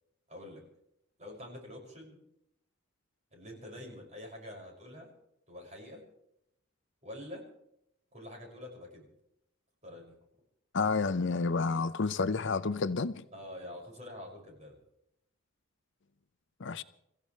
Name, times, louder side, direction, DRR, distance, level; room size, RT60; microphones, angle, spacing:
voice 1, 0.3-0.6 1.2-2.2 3.3-5.1 5.5-6.0 7.0-7.4 8.1-9.1 9.8-10.1 13.3-14.8, left 1 dB, 35° right, 6.1 m, -46 dB
voice 2, 10.7-13.2 16.6-16.8, left 4 dB, 60° left, 0.6 m, -30 dB
28.5 x 15.5 x 3.2 m
head